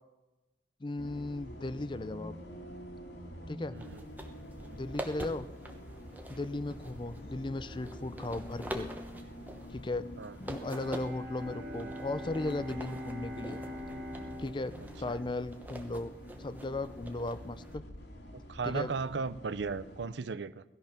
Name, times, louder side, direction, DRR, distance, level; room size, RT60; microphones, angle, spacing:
voice 1, 0.8-2.4 3.5-3.8 4.7-5.5 6.3-8.9 9.7-10.1 10.4-13.6 14.4-16.1 16.4-17.8 18.6-18.9, left 2 dB, 25° left, 14 dB, 0.5 m, -36 dB
Bus, 1.0-20.1, equal, 70° left, 2.3 m, -47 dB
voice 2, 3.7-4.0 10.2-10.4 18.5-20.6, right 4 dB, 70° right, 15 dB, 0.6 m, -35 dB
sound 1, 3.8-17.8, right 1 dB, 10° right, 1.0 m, -47 dB
Bowed string instrument, 10.6-16.5, left 1 dB, 50° right, 2.5 m, -44 dB
18.0 x 13.5 x 5.8 m, 1.1 s
head